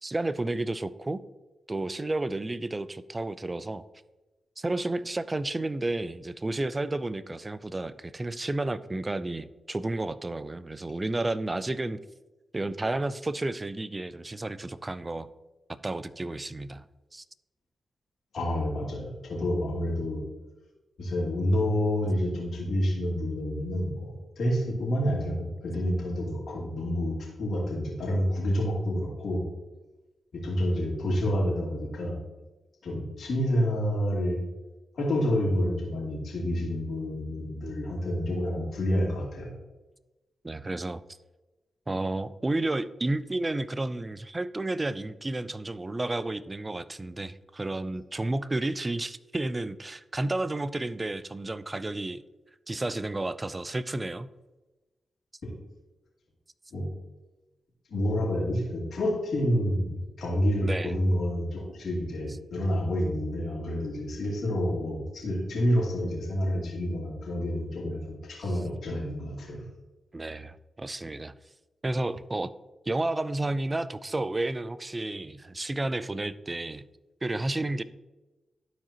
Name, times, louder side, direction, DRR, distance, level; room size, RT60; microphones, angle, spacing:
voice 1, 0.0-1.2 1.7-3.8 4.6-12.0 12.5-15.3 15.7-16.8 17.1-17.2 40.4-41.0 41.9-52.2 52.7-54.3 60.6-60.9 70.1-71.3 71.8-72.5 72.9-76.9 77.2-77.8, right 2 dB, 25° right, 16 dB, 0.4 m, -31 dB
voice 2, 18.3-20.2 21.0-29.4 30.3-32.2 32.8-34.4 34.9-39.5 55.4-55.5 56.7-56.9 57.9-69.7, equal, 70° left, -3 dB, 2.4 m, -28 dB
12.0 x 4.8 x 2.9 m, 1.1 s
cardioid pair, 55°, 0 cm